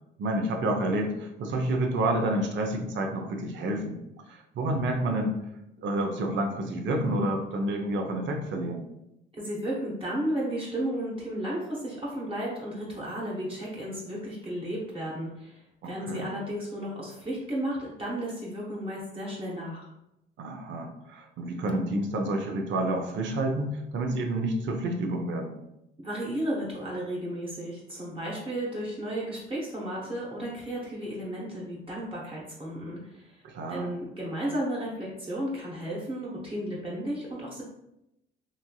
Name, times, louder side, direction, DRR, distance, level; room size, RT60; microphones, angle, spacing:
voice 1, 0.2-4.0 4.3-5.3 5.8-8.9 15.8-16.3 20.4-25.6 33.4-34.0, right 1 dB, 70° right, 3 dB, 0.6 m, -29 dB
voice 2, 9.4-19.9 26.0-33.4 33.7-37.6, right 1 dB, 30° right, -6 dB, 0.9 m, -33 dB
3.1 x 2.6 x 2.2 m, 0.85 s
cardioid pair, 90°, 20 cm